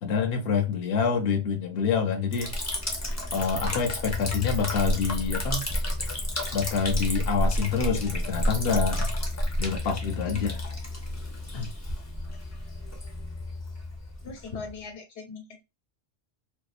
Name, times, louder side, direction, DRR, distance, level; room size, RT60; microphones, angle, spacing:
voice 1, 0.0-2.5 3.3-5.7 6.5-9.1 9.6-10.6 11.5-11.7, left 6 dB, 70° left, 0.8 m, -27 dB
Liquid, 2.3-14.8, left 1 dB, 20° left, 0.5 m, -30 dB
voice 2, 14.2-15.6, left 4 dB, 90° left, 1.1 m, -40 dB
2.7 x 2.2 x 2.3 m
omnidirectional pair, 1.1 m